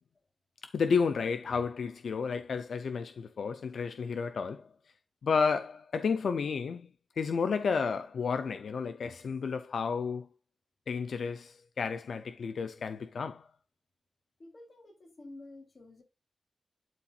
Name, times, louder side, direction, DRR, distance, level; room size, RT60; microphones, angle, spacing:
voice 1, 0.6-4.7 5.2-6.9 7.2-10.3 10.9-13.5, left 5 dB, 85° left, 0.6 m, -31 dB
voice 2, 14.4-16.0, left 2 dB, 50° left, 3.6 m, -50 dB
12.0 x 4.4 x 2.5 m
wide cardioid pair, 95°, 0 cm